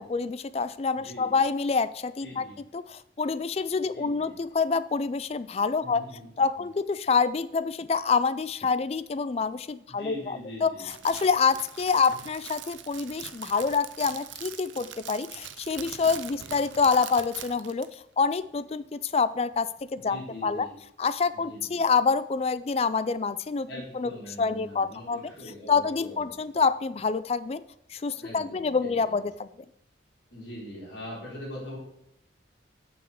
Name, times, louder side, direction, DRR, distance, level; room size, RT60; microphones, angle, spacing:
voice 1, 0.0-2.4 2.7-6.0 6.4-10.7 11.0-20.7 21.0-23.7 23.9-24.1 24.4-25.3 25.7-27.6 27.9-29.5, left 5 dB, 35° left, 15 dB, 0.3 m, -27 dB
voice 2, 0.9-1.3 2.2-2.5 3.9-4.3 5.8-6.3 9.9-10.9 12.2-12.3 16.3-16.5 19.9-20.8 21.4-21.8 23.7-26.6 28.2-29.1 30.3-31.8, left 1 dB, 75° left, -4 dB, 4.3 m, -42 dB
Crackle, 10.8-17.9, right 10 dB, 85° right, 0.6 m, -42 dB
7.0 x 6.2 x 7.0 m, 0.78 s
head